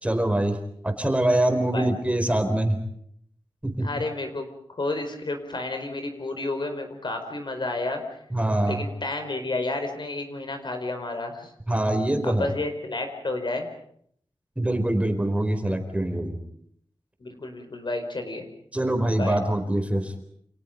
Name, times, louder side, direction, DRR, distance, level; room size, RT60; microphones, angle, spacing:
voice 1, 0.0-2.8 3.6-3.9 8.3-8.9 11.7-12.5 14.6-16.4 18.7-20.1, right 1 dB, 15° right, 6 dB, 4.2 m, -24 dB
voice 2, 3.8-8.0 8.6-11.5 12.2-13.7 17.2-18.5 19.2-19.4, left 2 dB, 60° left, 6 dB, 4.9 m, -31 dB
30.0 x 27.5 x 5.3 m, 0.66 s
wide cardioid pair, 95°, 9 cm